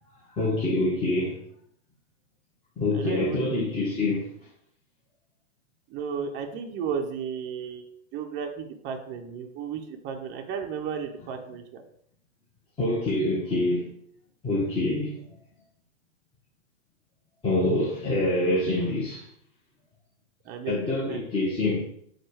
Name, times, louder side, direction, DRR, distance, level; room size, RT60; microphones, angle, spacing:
voice 1, 0.3-1.4 2.8-4.3 12.8-13.9 14.4-15.4 17.4-19.3 20.7-21.9, left 2 dB, 15° left, 1.0 m, -26 dB
voice 2, 2.9-3.7 5.9-7.8 8.1-11.8 20.5-21.2, right 7 dB, 30° right, 0.6 m, -34 dB
4.4 x 2.4 x 4.6 m
hypercardioid pair, 115°, 36 cm